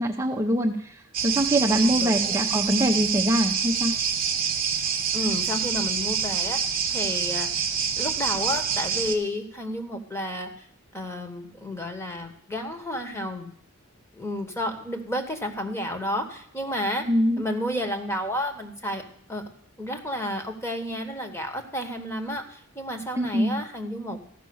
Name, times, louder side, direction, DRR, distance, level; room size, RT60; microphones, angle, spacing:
voice 1, 0.0-3.9 17.1-17.4 23.2-23.6, equal, 15° right, 0 dB, 0.7 m, -23 dB
sound 1, 1.1-9.2, right 7 dB, 40° right, 1.3 m, -26 dB
voice 2, 1.6-2.4 5.1-6.6 6.9-7.5 8.0-10.7 10.9-13.5 14.1-17.0 17.4-19.0 19.3-19.4 19.8-24.2, equal, 10° left, 6 dB, 1.3 m, -31 dB
14.0 x 6.0 x 7.0 m, 0.63 s
head